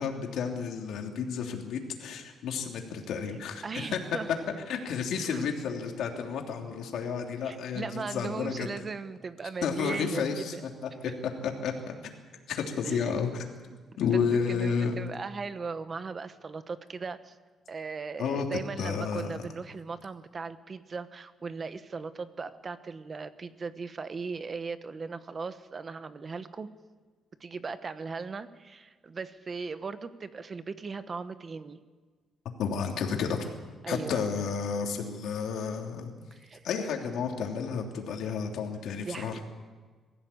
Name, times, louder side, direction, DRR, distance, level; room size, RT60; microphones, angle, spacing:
voice 1, 0.0-4.0 4.7-8.7 9.6-10.5 10.8-10.9 11.4-12.0 12.5-13.3 14.0-14.9 18.2-18.5 18.8-19.3 32.6-33.4 33.9-36.1 36.6-39.4, left 6 dB, 75° left, 2 dB, 3.2 m, -31 dB
voice 2, 3.6-4.3 5.2-5.5 7.4-10.6 12.8-13.3 13.6-14.1 14.5-17.3 17.7-26.7 27.4-31.8 33.8-34.2 36.3-36.6 38.9-39.4, right 4 dB, 35° right, 12 dB, 1.1 m, -38 dB
22.5 x 15.0 x 8.6 m, 1.5 s
cardioid pair, 125°, 0 cm